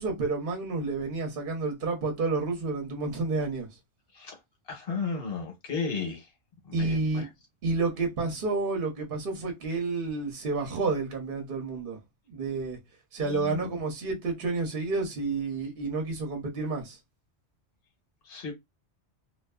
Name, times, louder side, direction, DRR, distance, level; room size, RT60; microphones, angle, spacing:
voice 1, 0.0-3.7 6.7-7.3 7.6-12.0 12.3-12.8 13.1-17.0, right 3 dB, 55° right, 0.9 m, -30 dB
voice 2, 4.7-6.2 6.7-7.3 13.2-13.7 18.3-18.5, left 5 dB, 55° left, 1.1 m, -34 dB
2.5 x 2.4 x 2.3 m
omnidirectional pair, 1.2 m